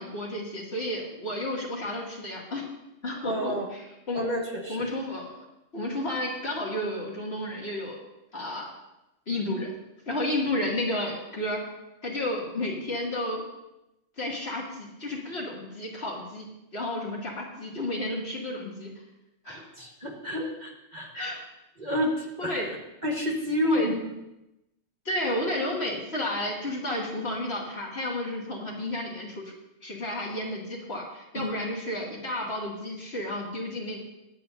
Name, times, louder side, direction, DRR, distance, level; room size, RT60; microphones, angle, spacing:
voice 1, 0.0-2.7 3.0-4.4 4.7-5.4 5.7-8.0 8.3-8.7 9.3-9.7 10.1-11.6 12.0-13.4 14.2-16.5 16.7-18.9 19.4-19.7 21.1-21.4 22.4-22.7 23.7-23.9 25.0-29.5 29.8-34.0, left 1 dB, 55° left, -3 dB, 2.6 m, -32 dB
voice 2, 3.2-3.7 4.1-4.9 19.5-21.1 21.8-22.7 23.0-24.1 31.3-31.6, left 1 dB, 35° right, 0 dB, 1.6 m, -29 dB
21.5 x 8.6 x 2.7 m, 0.91 s
omnidirectional pair, 1.2 m